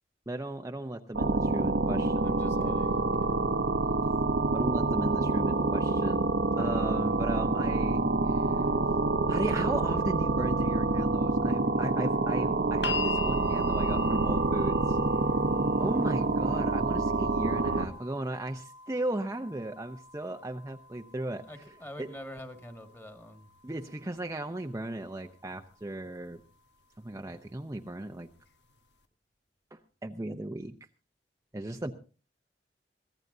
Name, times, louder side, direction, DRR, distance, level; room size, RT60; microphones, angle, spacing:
voice 1, 0.3-2.9 4.5-8.7 9.3-15.0 15.8-22.1 23.6-26.4 27.0-28.3 29.7-30.7 31.5-31.9, right 1 dB, 20° right, 4 dB, 0.7 m, -36 dB
sound 1, 1.1-17.9, right 3 dB, 90° right, 1.2 m, -27 dB
voice 2, 2.2-3.4 21.5-23.5, left 1 dB, 15° left, 6 dB, 1.9 m, -46 dB
sound 2, 12.8-24.9 26.0-26.1, left 4 dB, 80° left, 1.3 m, -42 dB
24.0 x 16.5 x 2.7 m, 0.35 s
head